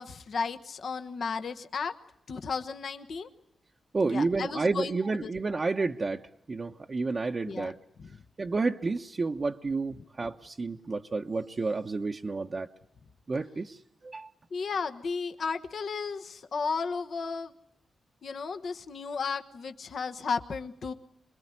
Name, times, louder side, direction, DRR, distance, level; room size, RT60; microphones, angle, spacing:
voice 1, 0.0-2.0 2.3-3.3 4.1-5.3 7.5-7.7 8.0-8.1 14.5-17.5 18.2-20.9, left 5 dB, 65° left, 7 dB, 1.2 m, -34 dB
voice 2, 3.9-7.8 8.4-12.7 13.3-13.8 14.0-14.3, right 3 dB, 45° right, 2 dB, 1.0 m, -30 dB
25.5 x 21.5 x 9.8 m, 0.76 s
cardioid pair, 60°, 0 cm